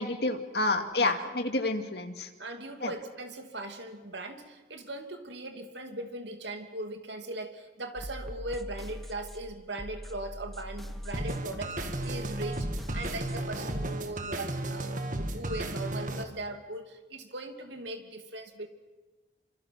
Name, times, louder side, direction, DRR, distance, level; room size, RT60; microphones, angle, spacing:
voice 1, 0.0-2.3 2.8-2.9, left 2 dB, 60° left, 6 dB, 2.2 m, -29 dB
voice 2, 0.6-1.3 2.4-18.7, right 2 dB, 75° right, 6 dB, 2.8 m, -39 dB
sound 1, 8.0-13.4, equal, ahead, 1.3 m, -42 dB
sound 2, 11.1-16.2, right 1 dB, 45° right, 1.8 m, -34 dB
26.0 x 26.0 x 6.1 m, 1.2 s
head